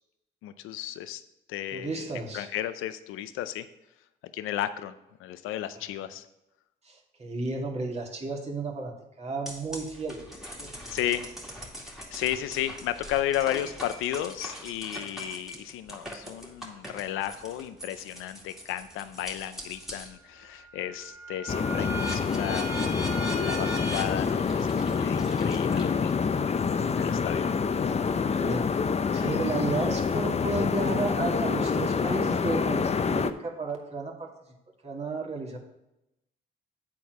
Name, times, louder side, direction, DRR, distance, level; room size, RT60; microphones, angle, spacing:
voice 1, 0.4-1.2 1.5-2.0 2.3-3.7 4.3-4.9 5.2-6.2 10.9-11.3 12.1-22.7 23.4-26.2 26.9-27.5 29.1-29.3, left 12 dB, 80° left, 12 dB, 0.6 m, -33 dB
voice 2, 1.7-2.5 5.8-5.9 6.8-10.2 10.6-10.9 27.8-28.8 29.1-34.3 34.8-35.6, right 3 dB, 30° right, -1 dB, 2.4 m, -33 dB
sound 1, 9.5-20.2 20.6-26.2, right 1 dB, ahead, 2.3 m, -40 dB
sound 2, 21.5-33.3, left 5 dB, 30° left, 0.6 m, -27 dB
8.4 x 4.5 x 6.4 m, 0.88 s
supercardioid pair, 60°, 21 cm